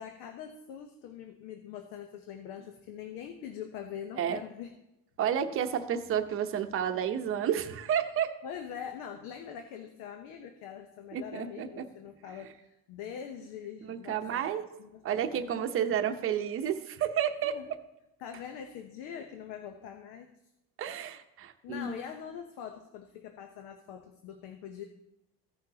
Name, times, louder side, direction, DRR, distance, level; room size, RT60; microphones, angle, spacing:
voice 1, 0.0-4.7 8.4-14.4 14.8-15.7 17.4-17.7 18.2-20.3 21.6-24.8, left 8 dB, 75° left, 5 dB, 0.9 m, -43 dB
voice 2, 5.2-8.3 11.1-11.9 13.9-14.6 15.0-17.6 20.8-21.9, right 9 dB, 40° right, 7 dB, 0.8 m, -31 dB
15.5 x 5.9 x 2.8 m, 0.92 s
cardioid pair, 145°, 34 cm